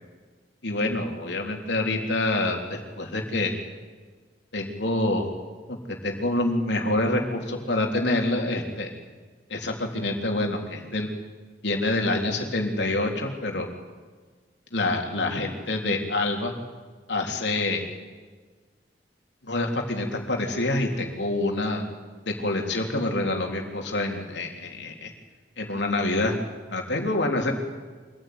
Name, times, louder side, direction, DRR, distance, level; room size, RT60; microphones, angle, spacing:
voice 1, 0.6-3.6 4.5-5.3 5.7-8.9 9.5-11.1 11.6-13.7 14.7-16.5 17.1-17.8 19.4-21.8 22.3-25.1 25.6-26.4 26.7-27.5, left 2 dB, 70° left, 2 dB, 3.7 m, -26 dB
25.5 x 15.0 x 9.6 m, 1.4 s
head